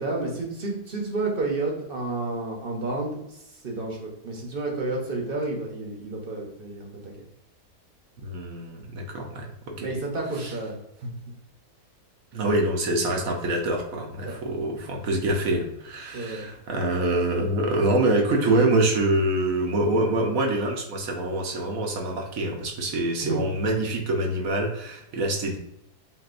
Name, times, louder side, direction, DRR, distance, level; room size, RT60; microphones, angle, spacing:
voice 1, 0.0-3.2 3.6-7.1 9.8-10.7 11.0-11.1 14.2-14.3 16.1-16.5 23.2-23.4, right 2 dB, 40° right, 0 dB, 1.1 m, -30 dB
voice 2, 8.2-9.9 10.4-10.5 12.3-25.6, right 1 dB, 65° right, 1 dB, 1.2 m, -25 dB
7.5 x 2.6 x 2.5 m, 0.80 s
omnidirectional pair, 1.6 m